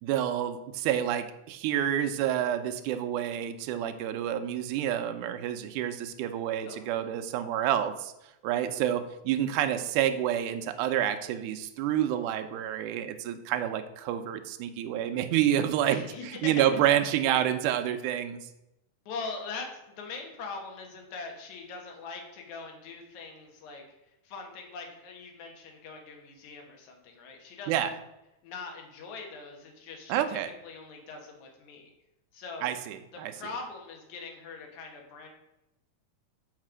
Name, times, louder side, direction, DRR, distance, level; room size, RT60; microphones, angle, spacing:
voice 1, 0.0-8.1 8.4-18.4 27.7-27.9 30.1-30.5 32.6-33.3, right 11 dB, 80° right, 8 dB, 2.1 m, -28 dB
voice 2, 6.7-7.1 15.8-16.7 19.1-23.8 24.2-27.9 28.4-31.9 32.3-32.7 33.1-35.3, left 4 dB, 70° left, 2 dB, 2.7 m, -42 dB
6.5 x 5.2 x 6.2 m, 0.90 s
omnidirectional pair, 3.6 m